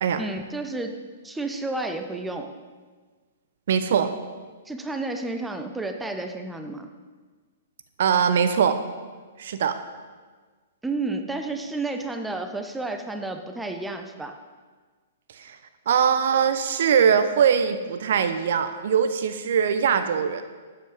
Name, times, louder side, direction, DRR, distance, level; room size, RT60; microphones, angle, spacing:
voice 1, 0.2-2.5 4.7-6.9 10.8-14.4, right 2 dB, 5° right, 6 dB, 0.9 m, -31 dB
voice 2, 3.7-4.1 8.0-8.8 9.4-9.8 15.3-15.6 15.9-20.4, right 7 dB, 50° right, 9 dB, 0.8 m, -22 dB
12.5 x 8.9 x 5.1 m, 1.4 s
figure-of-eight pair, 115°, 0 cm